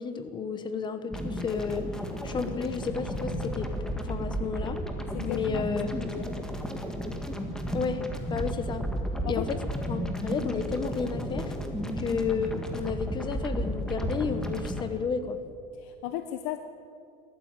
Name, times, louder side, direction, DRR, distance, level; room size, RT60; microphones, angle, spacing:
voice 1, 0.0-1.9 2.2-3.7 4.0-4.8 5.2-6.1 7.7-8.0 8.3-8.8 9.3-9.6 9.9-11.5 12.0-15.4, left 5 dB, 25° left, 10 dB, 1.1 m, -32 dB
sound 1, 1.1-14.8, equal, 5° left, 1.7 m, -33 dB
voice 2, 5.1-6.3 9.2-9.5 15.8-16.6, left 12 dB, 75° left, 8 dB, 1.1 m, -36 dB
20.0 x 14.5 x 9.0 m, 2.4 s
cardioid pair, 160°, 19 cm